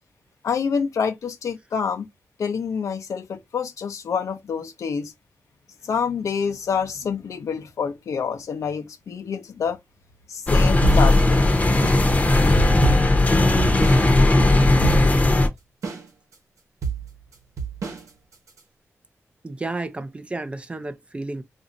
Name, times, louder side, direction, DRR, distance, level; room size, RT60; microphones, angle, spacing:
voice 1, 0.4-2.1 2.4-5.1 5.8-9.8 10.3-11.5, left 6 dB, 80° left, 0.7 m, -27 dB
sound 1, 10.5-15.5, left 2 dB, 30° left, 0.8 m, -17 dB
sound 2, 10.8-14.1 14.3-14.4 14.8-15.3 15.8-16.3 16.8-18.6, right 6 dB, 90° right, 1.1 m, -29 dB
voice 2, 19.4-21.4, right 2 dB, 20° right, 0.5 m, -32 dB
4.0 x 2.6 x 2.5 m
wide cardioid pair, 110°, 5 cm